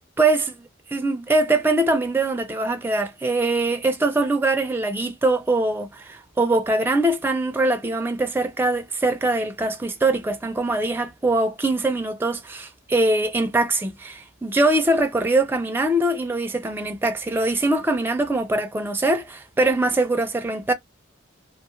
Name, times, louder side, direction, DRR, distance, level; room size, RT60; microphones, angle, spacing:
voice 1, 0.2-0.5 0.9-20.7, right 2 dB, 10° right, 0.3 m, -22 dB
2.4 x 2.3 x 3.0 m
head